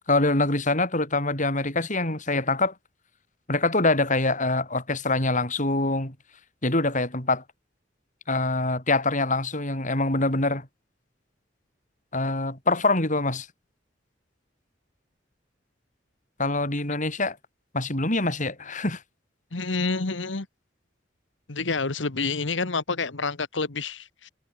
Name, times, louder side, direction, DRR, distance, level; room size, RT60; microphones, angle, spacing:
voice 1, 0.1-2.7 3.5-6.1 6.6-7.4 8.3-10.7 12.1-13.5 16.4-17.4 17.7-19.0, left 2 dB, 45° left, 7.7 m, -24 dB
voice 2, 19.5-20.5 21.5-24.3, left 4 dB, 90° left, 1.5 m, -28 dB
head